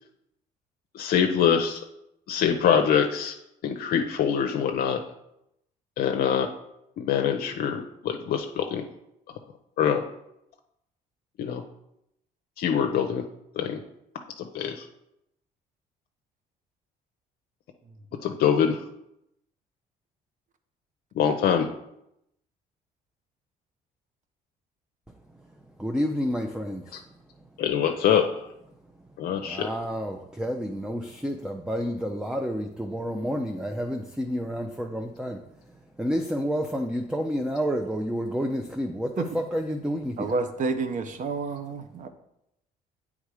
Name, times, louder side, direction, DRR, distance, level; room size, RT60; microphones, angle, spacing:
voice 1, 0.9-1.8 2.3-3.4 3.6-5.0 6.0-6.5 7.0-8.8 9.8-10.0 11.4-11.6 12.6-13.2 13.6-13.8 14.4-14.8 18.2-18.8 21.2-21.7 27.6-28.2 29.2-29.7, left 8 dB, 65° left, 4 dB, 0.6 m, -24 dB
voice 2, 25.8-27.0 29.4-35.4 36.0-40.3, equal, 5° right, 4 dB, 0.5 m, -29 dB
voice 3, 40.2-42.1, right 4 dB, 50° right, 9 dB, 0.8 m, -29 dB
8.1 x 3.6 x 4.8 m, 0.81 s
cardioid pair, 110°, 17 cm